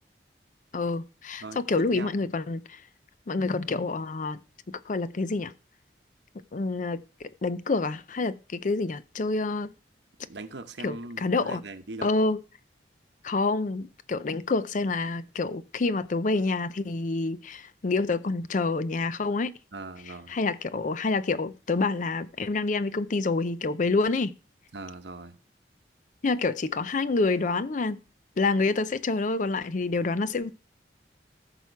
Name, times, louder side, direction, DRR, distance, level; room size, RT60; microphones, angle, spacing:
voice 1, 0.7-2.8 3.3-4.4 4.7-5.5 6.5-9.7 10.8-11.6 12.0-12.4 13.2-19.5 20.3-24.3 26.2-28.0 28.4-30.5, left 3 dB, 45° left, 0.5 m, -27 dB
voice 2, 1.4-2.1 10.3-12.1 19.7-20.3 24.7-25.4, right 2 dB, 80° right, 1.0 m, -40 dB
14.0 x 6.0 x 4.6 m
head